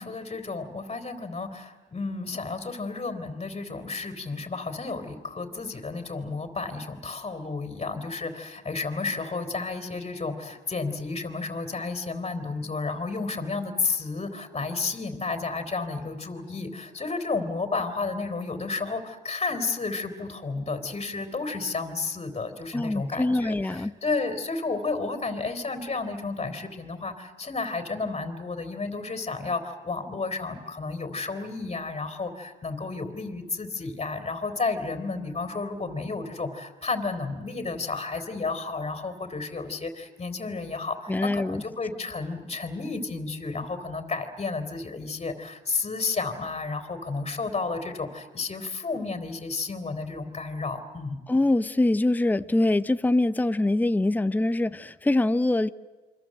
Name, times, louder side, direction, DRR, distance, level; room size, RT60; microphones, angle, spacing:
voice 1, 0.0-51.2, left 4 dB, 30° left, 3.6 m, -32 dB
voice 2, 22.7-23.9 41.1-41.6 51.3-55.7, left 2 dB, 10° left, 0.7 m, -24 dB
28.0 x 24.5 x 7.7 m
cardioid pair, 90°, 20 cm